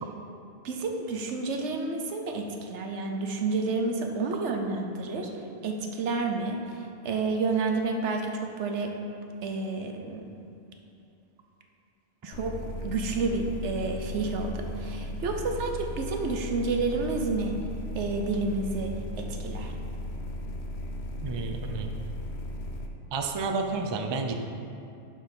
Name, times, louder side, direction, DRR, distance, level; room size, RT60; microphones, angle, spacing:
voice 1, 0.6-5.3 5.6-8.9 9.4-10.2 12.2-12.6 12.8-17.5 17.9-19.7, right 3 dB, 85° right, 3 dB, 1.1 m, -30 dB
sound 1, 12.3-22.9, left 1 dB, 75° left, 1.0 m, -36 dB
voice 2, 21.2-21.9 23.1-24.3, right 4 dB, 35° right, 4 dB, 0.4 m, -30 dB
6.7 x 6.0 x 5.5 m, 2.7 s
omnidirectional pair, 1.2 m